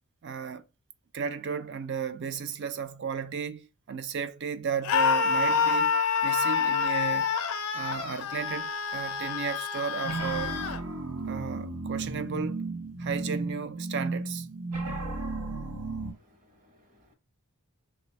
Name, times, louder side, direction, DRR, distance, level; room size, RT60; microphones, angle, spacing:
voice 1, 0.2-0.6 1.1-5.9 6.2-7.3 7.7-10.6 11.3-12.6 13.0-14.5, right 6 dB, 55° right, 0.4 m, -34 dB
Screaming, 4.8-10.8, left 5 dB, 80° left, 0.5 m, -27 dB
sound 1, 10.0-16.1, right 3 dB, 90° right, 0.8 m, -34 dB
voice 2, 16.0-17.1, left 1 dB, 35° right, 1.0 m, -63 dB
3.3 x 2.2 x 4.3 m
head